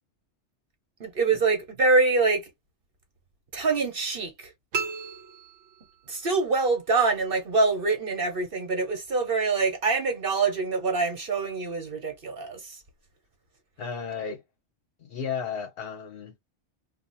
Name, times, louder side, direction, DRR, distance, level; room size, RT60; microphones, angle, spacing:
voice 1, 1.0-2.4 3.5-4.5 6.1-12.8, right 3 dB, 50° right, 1.4 m, -25 dB
sound 1, 4.7-6.3, right 5 dB, 75° right, 1.0 m, -35 dB
voice 2, 13.8-14.4 15.0-16.4, left 6 dB, 60° left, 0.9 m, -34 dB
2.7 x 2.5 x 4.0 m
omnidirectional pair, 1.2 m